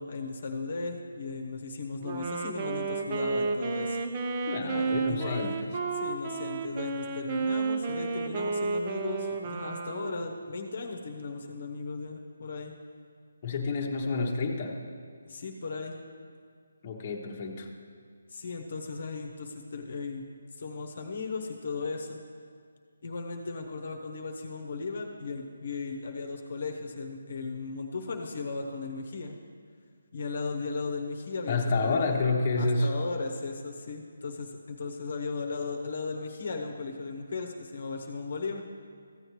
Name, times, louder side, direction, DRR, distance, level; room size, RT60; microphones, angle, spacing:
voice 1, 0.0-4.0 4.6-5.6 6.0-12.7 15.3-16.0 18.3-20.2 20.5-22.2 23.0-29.3 30.1-32.2 32.6-38.6, left 4 dB, 60° left, 3 dB, 0.9 m, -36 dB
Wind instrument woodwind instrument, 2.0-10.7, right 4 dB, 30° right, 0.6 m, -32 dB
voice 2, 4.5-5.6 13.4-14.8 16.8-17.7 31.5-32.9, left 3 dB, 30° left, -1 dB, 1.0 m, -29 dB
14.5 x 7.8 x 3.1 m, 2.1 s
figure-of-eight pair, 160°, 0 cm